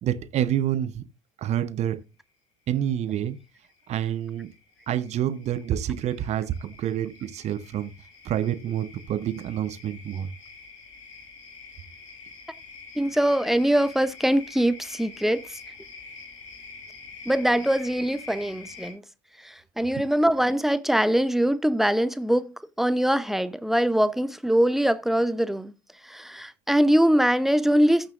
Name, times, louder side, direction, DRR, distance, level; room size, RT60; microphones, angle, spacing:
voice 1, 0.0-1.1 1.4-2.1 2.7-3.4 3.9-4.5 4.9-7.9 8.2-10.3 20.0-20.1, right 10 dB, 45° right, 0.8 m, -28 dB
sound 1, 2.7-2.8 3.2-18.9, left 4 dB, 80° left, 3.3 m, -46 dB
voice 2, 13.0-15.6 17.3-19.0 19.4-25.7 26.0-28.1, equal, ahead, 0.7 m, -23 dB
14.5 x 6.5 x 2.5 m
figure-of-eight pair, 60°, 16 cm